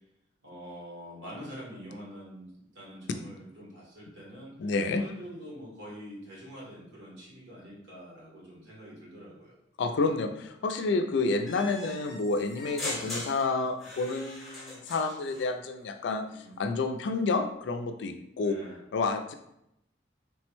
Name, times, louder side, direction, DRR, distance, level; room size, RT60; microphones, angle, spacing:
voice 1, 0.4-2.5 2.7-4.5 4.9-9.5 11.5-12.0 12.9-13.2 16.2-16.6 18.4-18.8, equal, 80° right, -5 dB, 1.3 m, -45 dB
voice 2, 4.6-5.0 9.8-16.2 16.6-18.6 18.9-19.4, left 3 dB, 70° left, 7 dB, 0.3 m, -29 dB
sound 1, 11.5-15.5, left 2 dB, ahead, 0.7 m, -40 dB
3.2 x 2.1 x 3.0 m, 0.80 s
head